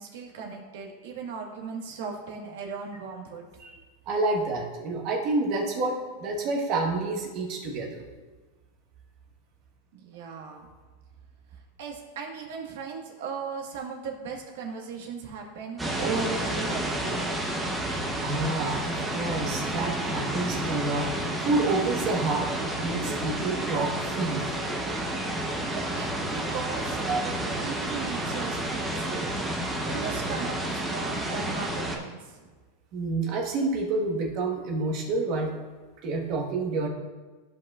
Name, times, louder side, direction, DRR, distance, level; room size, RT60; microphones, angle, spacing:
voice 1, 0.0-3.5 9.9-10.7 11.8-17.3 25.6-29.4 29.8-32.5, right 5 dB, 65° right, 1 dB, 1.5 m, -37 dB
voice 2, 4.1-8.0 18.2-24.5 26.4-26.5 27.1-27.2 32.9-35.5 36.0-36.9, right 3 dB, 40° right, 0 dB, 1.3 m, -29 dB
sound 1, 15.8-32.0, right 1 dB, 5° right, 0.8 m, -30 dB
14.0 x 5.3 x 2.4 m, 1.3 s
supercardioid pair, 165°, 0 cm